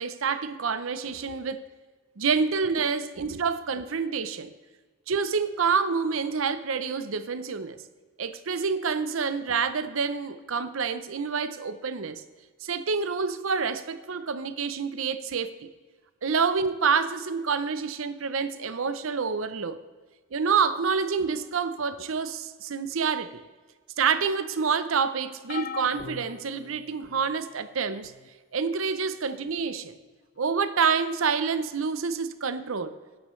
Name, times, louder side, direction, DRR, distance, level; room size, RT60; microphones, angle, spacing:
voice 1, 0.0-1.6 2.2-4.5 5.1-7.8 8.2-12.2 12.6-15.7 16.2-19.8 20.3-23.4 24.0-28.1 28.5-29.9 30.4-32.9, right 5 dB, 75° right, 12 dB, 0.7 m, -27 dB
sound 1, 25.5-27.3 28.0-28.3 29.6-29.7, left 6 dB, 40° left, 0.4 m, -40 dB
13.0 x 9.9 x 3.2 m, 1.3 s
head